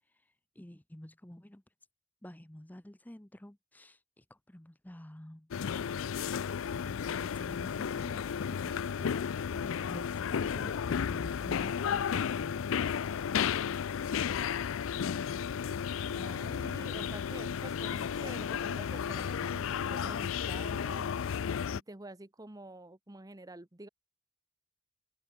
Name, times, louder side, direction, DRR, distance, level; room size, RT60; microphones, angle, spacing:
voice 1, 0.1-1.6 2.2-5.5 6.7-8.2 8.5-12.6, left 1 dB, 10° left, 0.7 m, -49 dB
sound 1, 5.5-21.8, left 7 dB, 70° left, 0.4 m, -33 dB
voice 2, 16.0-21.1 21.7-23.9, right 2 dB, 15° right, 0.9 m, -48 dB
head